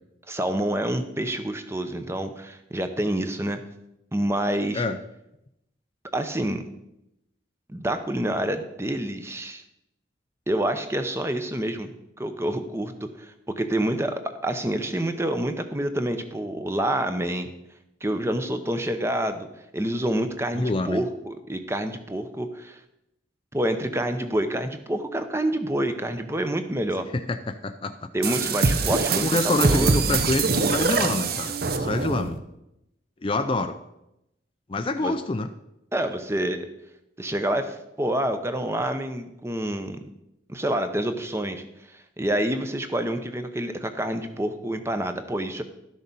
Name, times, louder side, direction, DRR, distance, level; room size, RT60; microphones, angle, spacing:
voice 1, 0.3-3.6 4.1-4.8 6.1-6.6 7.7-9.6 10.5-11.9 12.2-17.5 18.0-19.5 19.7-22.8 23.5-27.1 28.1-30.0 35.0-35.2 35.9-36.7 37.2-40.0 40.5-41.6 41.9-45.6, right 1 dB, 15° right, 8 dB, 0.7 m, -27 dB
voice 2, 20.5-21.0 27.1-28.1 29.2-32.4 33.2-33.8 34.7-35.5, left 2 dB, 25° left, 8 dB, 0.4 m, -27 dB
sound 1, 28.2-32.4, right 4 dB, 50° right, 0.7 m, -24 dB
12.0 x 6.5 x 5.4 m, 0.85 s
head